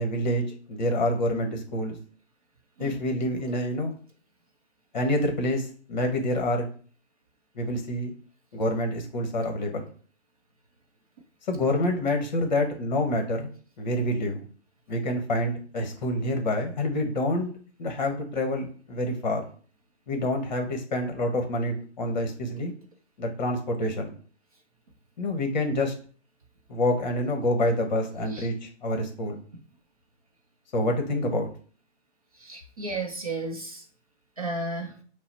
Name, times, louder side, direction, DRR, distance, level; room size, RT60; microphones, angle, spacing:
voice 1, 0.0-2.0 2.8-4.0 4.9-6.7 7.5-8.1 8.5-9.8 11.5-13.5 13.8-14.4 14.9-17.5 17.8-19.5 20.1-22.7 23.2-24.1 25.2-25.9 26.7-29.4 30.7-31.5, left 1 dB, 40° left, 4 dB, 1.0 m, -27 dB
voice 2, 32.4-33.8 34.4-34.9, right 2 dB, 35° right, 2 dB, 0.5 m, -33 dB
5.4 x 2.0 x 4.2 m, 0.42 s
hypercardioid pair, 160°, 35 cm